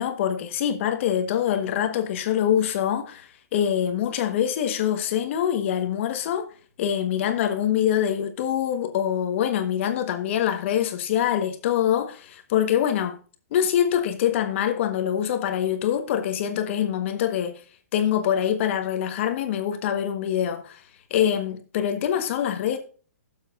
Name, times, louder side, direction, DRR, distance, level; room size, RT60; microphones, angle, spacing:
voice 1, 0.0-6.5 6.8-13.2 13.5-17.5 17.9-20.8 21.1-22.8, left 9 dB, 50° left, 1.5 m, -24 dB
15.0 x 7.4 x 2.6 m
hypercardioid pair, 140°, 8 cm